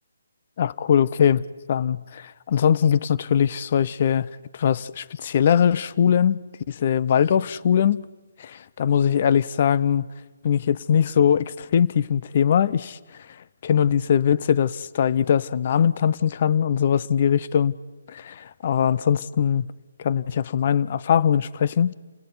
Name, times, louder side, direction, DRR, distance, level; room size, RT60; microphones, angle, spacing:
voice 1, 0.6-6.4 6.7-8.0 8.8-10.0 10.4-13.0 13.6-17.7 18.1-19.7 20.0-21.9, left 8 dB, 40° left, 0.7 m, -21 dB
29.0 x 17.0 x 9.7 m
hypercardioid pair, 160°, 0 cm